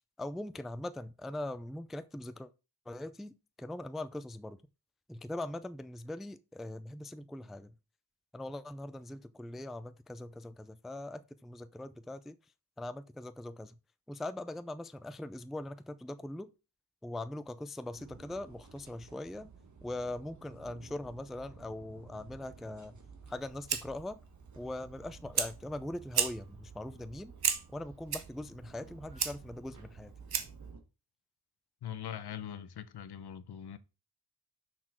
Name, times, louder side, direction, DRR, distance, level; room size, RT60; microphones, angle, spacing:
voice 1, 0.2-2.5 2.9-3.3 3.6-4.6 5.1-7.7 8.3-12.4 12.8-13.7 14.1-16.5 17.0-19.5 19.8-23.0 23.3-24.2 24.5-27.3 27.7-30.1, left 1 dB, ahead, 0.3 m, -41 dB
sound 1, 17.9-30.8, right 5 dB, 45° right, 1.6 m, -54 dB
Fire, 23.2-30.7, right 7 dB, 60° right, 1.2 m, -37 dB
voice 2, 31.8-33.8, left 9 dB, 65° left, 0.8 m, -42 dB
6.3 x 6.2 x 4.4 m
wide cardioid pair, 135°, 41 cm